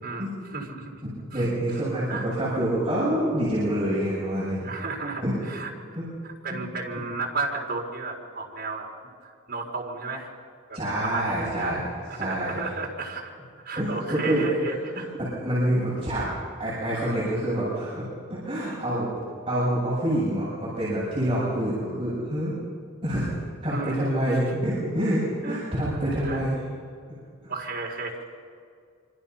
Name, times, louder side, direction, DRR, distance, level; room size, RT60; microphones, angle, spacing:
voice 1, 0.0-1.0 1.3-1.8 2.1-2.3 4.6-5.7 6.2-8.9 9.2-10.3 10.7-11.8 12.1-13.3 13.6-15.1 16.2-16.3 23.7-24.0 24.3-24.4 25.4-25.6 26.2-26.4 27.5-28.1, right 3 dB, 50° right, -1 dB, 4.4 m, -33 dB
voice 2, 1.0-4.6 5.2-5.4 5.9-6.1 6.5-6.6 10.7-11.8 12.2-12.5 13.8-14.5 14.9-16.3 16.6-19.1 19.5-22.6 23.0-23.3 23.6-26.6, right 1 dB, 25° right, -10 dB, 7.6 m, -27 dB
26.5 x 25.5 x 5.8 m, 2.2 s
head